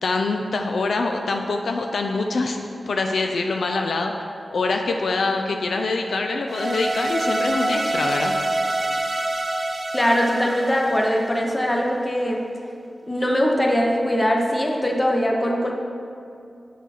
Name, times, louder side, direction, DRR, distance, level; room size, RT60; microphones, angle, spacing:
voice 1, 0.0-2.6 2.9-4.1 4.5-8.3, left 3 dB, 80° left, 3 dB, 0.3 m, -24 dB
sound 1, 6.5-11.7, right 2 dB, 35° right, 0.3 m, -26 dB
voice 2, 9.9-12.4 13.1-15.7, equal, 25° left, 0 dB, 0.8 m, -21 dB
6.0 x 4.1 x 4.1 m, 2.5 s
cardioid pair, 55°, 0 cm